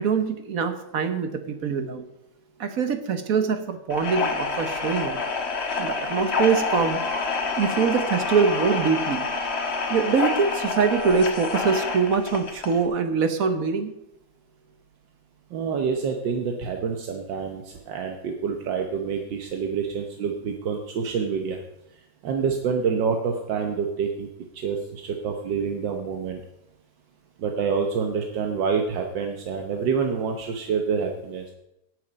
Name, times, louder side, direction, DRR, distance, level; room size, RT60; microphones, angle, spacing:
voice 1, 0.0-2.1 2.6-5.2 5.8-7.0 7.6-9.3 9.9-13.9, right 5 dB, 55° right, 8 dB, 1.3 m, -24 dB
sound 1, 3.9-12.8, left 4 dB, 40° left, 1.5 m, -28 dB
voice 2, 15.5-21.6 22.2-24.3 24.5-26.4 27.4-31.4, right 6 dB, 80° right, 3 dB, 1.7 m, -27 dB
16.5 x 6.5 x 5.2 m, 0.85 s
omnidirectional pair, 2.0 m